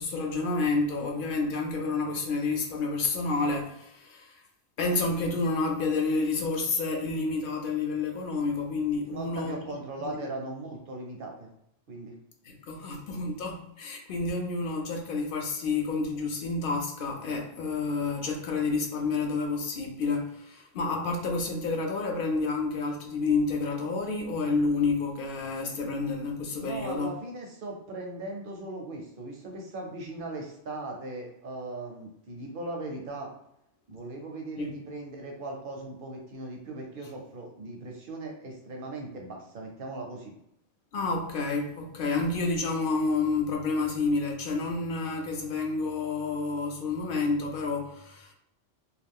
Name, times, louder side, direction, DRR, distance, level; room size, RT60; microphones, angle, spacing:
voice 1, 0.0-4.3 4.8-9.5 10.0-10.2 12.5-27.1 34.6-34.7 40.9-48.3, left 3 dB, 60° left, 2 dB, 0.6 m, -29 dB
voice 2, 9.1-11.5 11.9-12.2 26.6-33.3 33.9-40.3, right 2 dB, 60° right, 1 dB, 0.6 m, -39 dB
2.3 x 2.3 x 3.5 m, 0.77 s
omnidirectional pair, 1.3 m